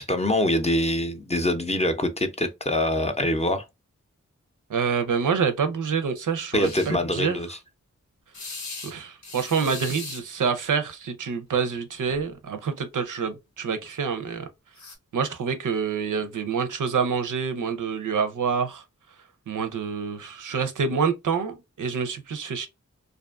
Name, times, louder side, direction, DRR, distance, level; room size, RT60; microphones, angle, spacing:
voice 1, 0.0-3.7 6.5-7.6, left 1 dB, 20° left, 0.5 m, -24 dB
voice 2, 4.7-7.4 8.8-14.5 15.1-18.8 19.5-22.7, right 6 dB, 90° right, 0.5 m, -27 dB
sound 1, 6.6-6.9 8.3-8.9 9.2-10.2 11.6-11.8 12.1-12.2 14.8-15.0, left 3 dB, 65° left, 0.7 m, -38 dB
2.5 x 2.3 x 2.3 m
wide cardioid pair, 70°, 30 cm